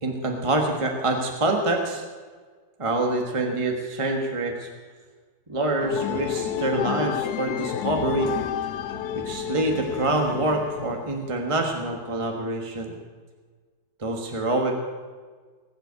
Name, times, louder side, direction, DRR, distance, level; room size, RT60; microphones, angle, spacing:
voice 1, 0.0-2.0 2.8-4.7 5.5-8.3 9.2-12.9 14.0-14.8, right 2 dB, 20° right, 2 dB, 1.5 m, -26 dB
sound 1, 5.8-11.3, left 11 dB, 75° left, 1.1 m, -31 dB
sound 2, 6.1-7.1 7.4-7.5 7.8-11.2, right 3 dB, 60° right, 1.8 m, -41 dB
19.5 x 8.2 x 8.1 m, 1.5 s
omnidirectional pair, 1.8 m